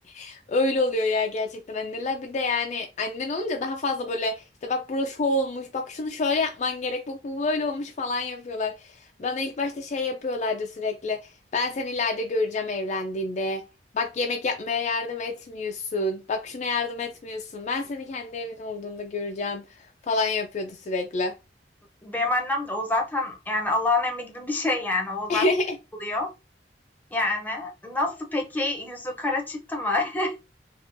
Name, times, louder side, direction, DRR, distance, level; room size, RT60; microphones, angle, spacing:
voice 1, 0.1-13.6 13.9-19.6 20.1-21.3 25.3-25.8, left 3 dB, 40° left, 0.4 m, -28 dB
voice 2, 22.0-25.4 26.0-26.3 27.1-30.4, left 2 dB, 10° left, 0.7 m, -27 dB
3.5 x 2.4 x 2.6 m
head